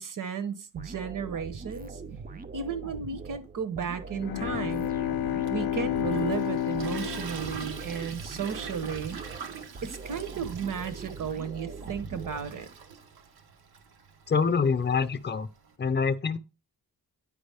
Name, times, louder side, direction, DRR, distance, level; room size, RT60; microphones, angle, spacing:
voice 1, 0.0-2.0 2.5-4.9 5.5-9.2 9.8-12.7, right 6 dB, 60° right, 1.0 m, -34 dB
sound 1, 0.7-12.9, right 4 dB, 25° right, 0.5 m, -42 dB
Bowed string instrument, 4.1-8.7, left 12 dB, 75° left, 0.5 m, -31 dB
Toilet flush, 5.5-15.7, right 6 dB, 85° right, 1.0 m, -43 dB
voice 2, 14.3-15.5 15.8-16.4, left 5 dB, 30° left, 0.6 m, -25 dB
8.8 x 4.9 x 3.4 m
cardioid pair, 100°, 37 cm